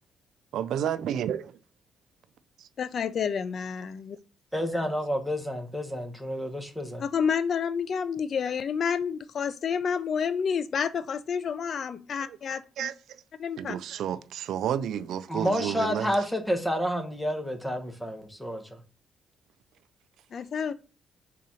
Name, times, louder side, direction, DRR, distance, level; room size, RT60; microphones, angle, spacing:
voice 1, 0.5-1.6 12.2-12.9 13.6-16.1, right 10 dB, 75° right, 0.3 m, -31 dB
voice 2, 2.8-4.2 7.0-12.9 13.4-13.8 20.3-20.7, left 6 dB, 55° left, 0.3 m, -29 dB
voice 3, 4.5-7.0 15.3-18.8, equal, 5° left, 1.0 m, -29 dB
3.9 x 2.9 x 4.8 m
cardioid pair, 90°, 0 cm